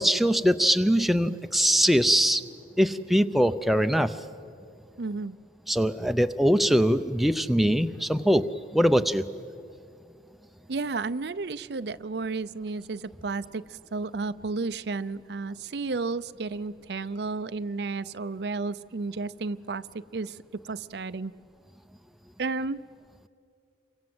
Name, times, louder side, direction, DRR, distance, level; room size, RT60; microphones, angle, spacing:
voice 1, 0.0-2.4 2.8-4.2 5.7-9.3, equal, ahead, 8 dB, 0.6 m, -22 dB
voice 2, 5.0-5.4 10.7-21.3 22.4-22.8, right 3 dB, 65° right, 14 dB, 0.6 m, -32 dB
28.5 x 24.0 x 7.9 m, 2.4 s
head